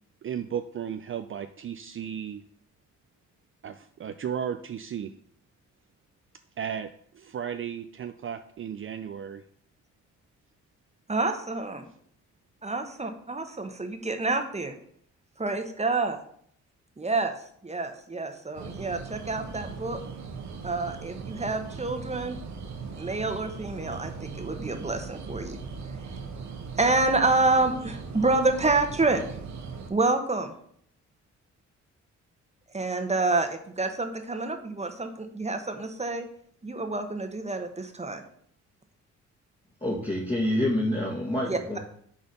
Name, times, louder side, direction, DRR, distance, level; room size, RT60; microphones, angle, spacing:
voice 1, 0.2-2.4 3.6-5.1 6.6-6.9 7.1-9.4, right 8 dB, 40° right, 9 dB, 0.5 m, -34 dB
voice 2, 11.1-11.8 12.6-14.7 15.4-16.2 17.0-17.3 17.6-20.0 20.6-22.4 23.0-25.6 26.8-29.2 29.9-30.5 32.7-36.3 36.6-38.2 41.4-41.8, right 3 dB, 20° right, 6 dB, 1.2 m, -28 dB
sound 1, 18.5-29.9, right 5 dB, 60° right, 1.2 m, -39 dB
voice 3, 39.8-41.8, left 1 dB, 20° left, -4 dB, 1.8 m, -27 dB
6.7 x 4.0 x 5.4 m, 0.63 s
supercardioid pair, 55°, 32 cm